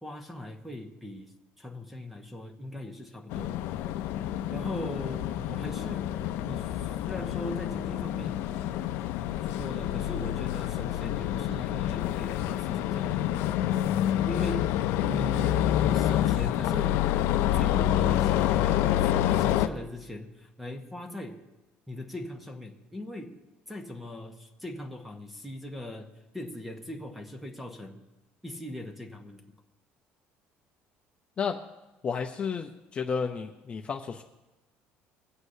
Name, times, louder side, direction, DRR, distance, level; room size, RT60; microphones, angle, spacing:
voice 1, 0.0-1.3 1.6-3.6 4.5-6.1 6.4-8.4 9.4-13.6 14.3-14.7 15.0-17.2 17.5-21.4 21.9-23.3 23.7-28.0 28.4-29.4, left 1 dB, ahead, 4 dB, 1.0 m, -40 dB
sound 1, 3.3-19.7, left 12 dB, 75° left, 0.5 m, -27 dB
voice 2, 32.0-34.2, left 6 dB, 30° left, 2 dB, 0.5 m, -32 dB
23.5 x 8.1 x 2.7 m, 1.0 s
cardioid pair, 155°, 4 cm